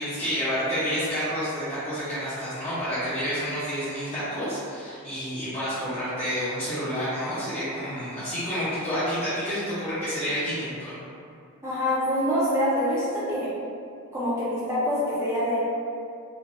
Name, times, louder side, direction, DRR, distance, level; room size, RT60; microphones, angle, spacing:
voice 1, 0.0-11.0, equal, 30° left, -14 dB, 0.8 m, -29 dB
voice 2, 11.6-13.5 14.1-15.6, equal, 15° right, -11 dB, 0.6 m, -25 dB
3.2 x 2.3 x 2.6 m, 2.4 s
head